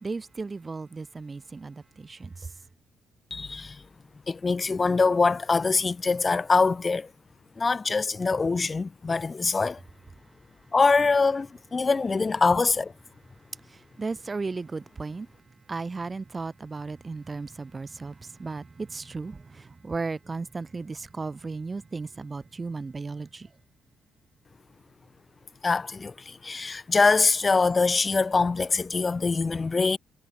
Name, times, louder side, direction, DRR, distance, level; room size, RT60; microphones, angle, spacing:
voice 1, 0.0-2.3 14.0-15.3 15.7-18.1 18.4-23.5, right 4 dB, 30° right, 1.6 m, -35 dB
voice 2, 3.3-3.8 4.3-7.1 7.6-9.8 10.7-12.9 25.6-30.0, left 4 dB, 30° left, 1.0 m, -24 dB
cardioid pair, 90°, 0 cm